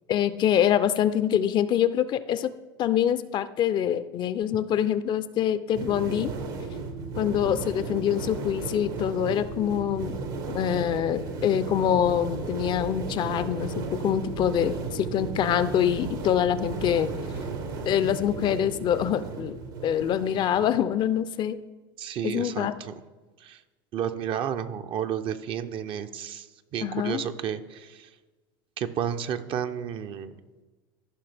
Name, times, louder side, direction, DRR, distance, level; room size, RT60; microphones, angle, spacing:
voice 1, 0.1-2.5 2.8-6.3 7.2-10.2 10.5-17.1 17.9-19.6 19.8-21.6 22.2-22.7 26.8-27.2, left 10 dB, 40° left, 14 dB, 0.5 m, -25 dB
sound 1, 5.7-20.9, right 4 dB, 70° right, 1.4 m, -34 dB
voice 2, 22.0-22.9 23.4-23.6 23.9-26.5 26.7-28.1 28.8-30.4, right 9 dB, 45° right, 9 dB, 0.6 m, -31 dB
14.5 x 5.6 x 3.4 m, 1.3 s
hypercardioid pair, 90°, 12 cm